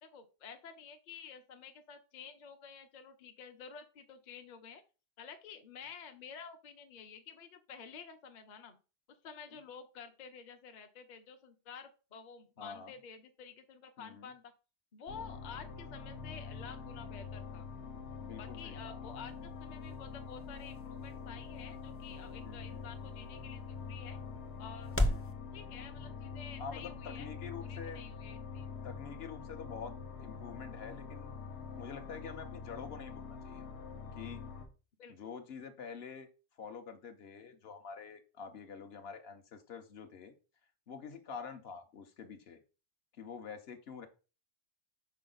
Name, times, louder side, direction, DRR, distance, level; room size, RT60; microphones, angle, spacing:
voice 1, 0.0-4.8 5.2-8.8 9.1-14.5 14.9-17.7 18.4-24.2 24.6-25.0 25.5-27.3 27.6-28.7 35.0-35.3, left 6 dB, 50° left, 7 dB, 0.7 m, -50 dB
voice 2, 12.6-12.9 14.0-14.3 18.2-19.3 22.4-22.8 25.0-25.3 26.6-28.0 28.8-31.3 31.7-33.6 34.1-34.5 35.1-36.3 36.6-40.3 40.9-42.6 43.2-44.1, left 6 dB, 65° left, 7 dB, 1.0 m, -47 dB
sound 1, 15.1-34.7, left 5 dB, 85° left, 1.2 m, -45 dB
sound 2, 19.1-25.3, left 1 dB, 20° left, 0.4 m, -40 dB
5.7 x 4.3 x 3.9 m, 0.33 s
omnidirectional pair, 1.1 m